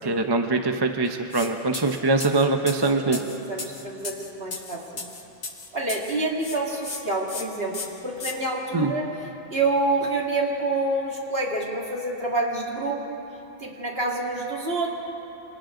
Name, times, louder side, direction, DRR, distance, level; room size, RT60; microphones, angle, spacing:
voice 1, 0.0-3.2 8.7-8.9, right 3 dB, 25° right, 5 dB, 0.8 m, -23 dB
sound 1, 1.3-1.5 1.7-6.1 6.4-7.0 7.3-7.4 7.7-8.3, left 4 dB, 75° left, 1.8 m, -35 dB
voice 2, 3.1-5.1 5.7-9.1 9.5-13.2 13.6-14.9, right 2 dB, 60° right, -1 dB, 2.8 m, -27 dB
28.5 x 27.5 x 3.9 m, 3.0 s
omnidirectional pair, 1.2 m